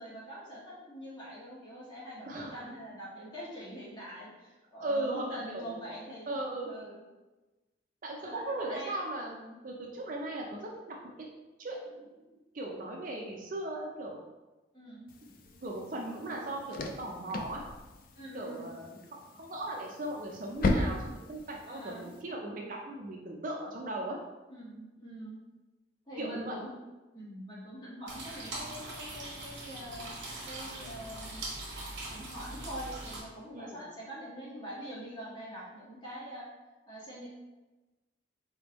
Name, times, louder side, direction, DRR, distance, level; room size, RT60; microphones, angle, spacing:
voice 1, 0.0-6.3 6.7-7.0 8.2-9.0 9.3-9.6 14.7-15.0 18.1-18.7 21.7-22.1 24.5-25.4 26.1-26.7 27.1-30.2 30.5-31.4 32.1-36.4 36.8-37.3, equal, 20° left, -8 dB, 1.5 m, -44 dB
voice 2, 2.3-2.7 4.8-5.9 6.3-6.7 8.0-9.3 9.6-11.3 11.6-12.3 12.5-14.2 15.2-15.3 15.6-17.6 18.3-24.2 26.2-26.6 33.5-33.8, right 1 dB, 45° right, 0 dB, 0.4 m, -38 dB
sound 1, 15.1-22.2, left 2 dB, 45° left, 0.3 m, -37 dB
sound 2, 28.1-33.2, right 2 dB, 65° right, 1.1 m, -41 dB
4.2 x 3.5 x 2.9 m, 1.1 s
head